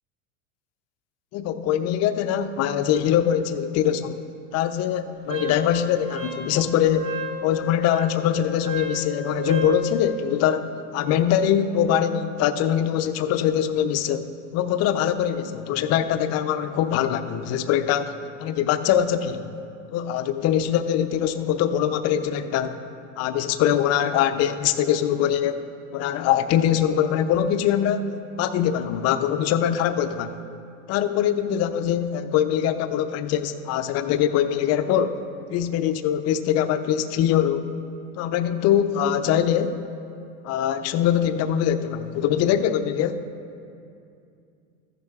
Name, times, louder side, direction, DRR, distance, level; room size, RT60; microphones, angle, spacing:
voice 1, 1.3-4.2 4.5-7.1 7.4-18.1 18.4-19.5 19.9-22.8 23.2-25.6 25.9-28.0 28.4-30.4 30.9-35.2 35.5-37.7 38.2-39.8 40.4-43.2, left 9 dB, 40° left, 10 dB, 0.5 m, -23 dB
Wind instrument woodwind instrument, 5.3-9.9, equal, 55° right, 1.9 m, -33 dB
14.0 x 10.5 x 2.4 m, 2.5 s
hypercardioid pair, 90°, 38 cm